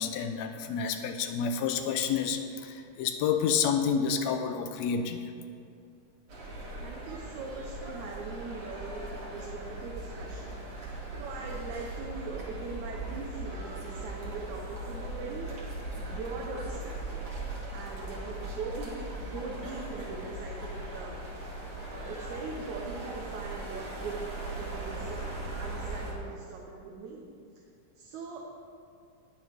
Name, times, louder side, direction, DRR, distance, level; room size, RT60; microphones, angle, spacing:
voice 1, 0.0-5.3, left 7 dB, 75° left, 7 dB, 1.8 m, -29 dB
sound 1, 6.3-26.1, right 2 dB, 50° right, 2.7 m, -39 dB
voice 2, 6.8-21.5 21.9-24.2 24.5-25.2 25.6-27.3 28.0-28.4, right 4 dB, 75° right, -2 dB, 2.3 m, -41 dB
19.0 x 7.1 x 3.5 m, 2.4 s
omnidirectional pair, 3.5 m